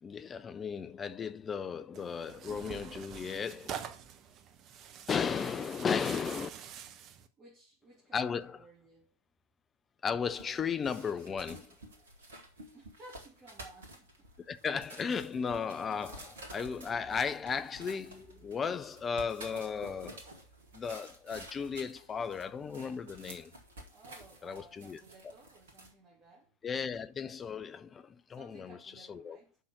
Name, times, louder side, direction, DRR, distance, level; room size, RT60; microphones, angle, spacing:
voice 1, 0.0-3.8 5.1-6.5 8.1-8.6 10.0-11.7 14.5-20.2 20.7-23.5 24.4-25.0 26.6-28.8 29.1-29.4, left 6 dB, 20° left, 0.5 m, -35 dB
Tearing, 1.9-7.3, right 8 dB, 35° right, 0.8 m, -46 dB
voice 2, 7.4-9.1 12.7-14.3 23.9-26.5 28.3-29.6, right 2 dB, 15° right, 2.6 m, -56 dB
sound 1, 10.3-25.9, right 1 dB, 60° right, 1.9 m, -51 dB
6.4 x 5.7 x 6.2 m
figure-of-eight pair, 90°, 0 cm